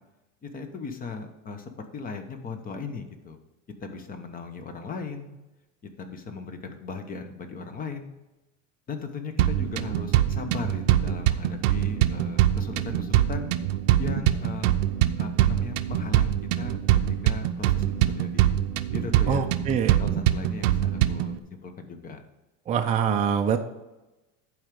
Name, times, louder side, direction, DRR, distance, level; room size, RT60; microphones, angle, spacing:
voice 1, 0.4-3.4 3.8-5.4 6.0-8.1 8.9-13.5 14.0-14.8 15.2-16.8 17.2-17.9 18.1-18.6 18.9-19.5 20.0-22.2, left 5 dB, 20° left, 7 dB, 1.0 m, -37 dB
sound 1, 9.4-21.4, right 12 dB, 75° right, 0.7 m, -24 dB
voice 2, 19.3-20.0 22.7-23.6, right 7 dB, 20° right, 4 dB, 0.5 m, -24 dB
11.0 x 4.8 x 5.2 m, 1.0 s
supercardioid pair, 130°, 38 cm